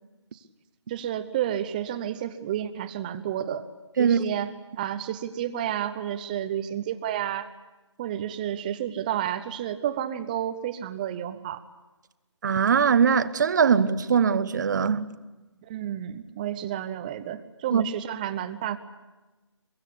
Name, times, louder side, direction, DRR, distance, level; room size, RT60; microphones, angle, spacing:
voice 1, 0.9-3.6 4.0-7.5 8.0-11.6 15.6-18.8, right 11 dB, 15° right, 0.8 m, -31 dB
voice 2, 12.4-15.1 17.7-17.8, right 6 dB, 40° right, 1.0 m, -21 dB
23.5 x 22.0 x 8.4 m
figure-of-eight pair, 160°, 16 cm